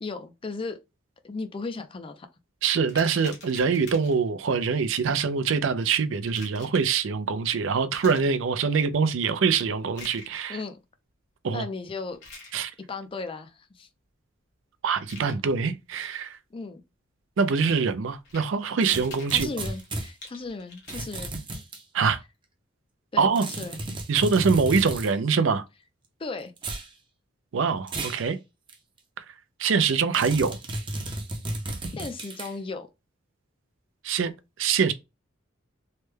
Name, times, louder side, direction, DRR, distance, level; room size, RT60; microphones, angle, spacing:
voice 1, 0.0-0.8 1.2-2.3 10.5-10.8 11.5-12.2 12.9-13.9 16.5-16.8 19.3-21.4 23.1-23.8 26.2-26.5 31.9-32.9, left 3 dB, 25° left, 0.4 m, -36 dB
voice 2, 2.6-10.6 11.4-11.7 12.5-12.7 14.8-16.4 17.4-19.5 21.9-22.2 23.2-23.5 24.1-25.6 27.5-28.4 29.2-29.3 29.6-30.6 34.0-34.3 34.6-34.9, right 5 dB, 70° right, 0.4 m, -24 dB
sound 1, 2.8-4.3 5.8-6.9 7.9-8.3 9.9-10.4 12.1-12.5 14.9-15.3 18.1-18.5 18.9-21.0, left 3 dB, 55° left, 1.3 m, -46 dB
sound 2, 18.8-20.1 20.9-21.8 23.3-25.1 26.6-26.9 27.9-28.2 28.7-28.8 30.1-32.5, right 2 dB, 25° right, 0.6 m, -33 dB
3.2 x 2.1 x 3.2 m
head